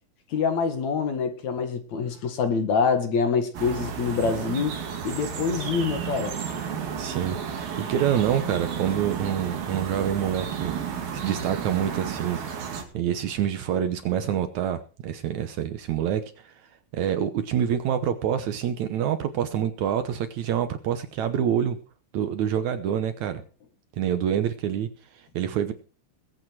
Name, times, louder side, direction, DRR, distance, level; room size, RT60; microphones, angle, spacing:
voice 1, 0.3-6.4, left 5 dB, 60° left, 2.9 m, -26 dB
sound 1, 3.5-12.8, right 7 dB, 85° right, 4.1 m, -32 dB
voice 2, 7.0-10.7 11.1-12.4 12.9-16.5 16.9-21.8 22.1-23.4 24.0-25.7, right 9 dB, 70° right, 2.0 m, -27 dB
21.0 x 8.7 x 4.7 m
omnidirectional pair, 4.0 m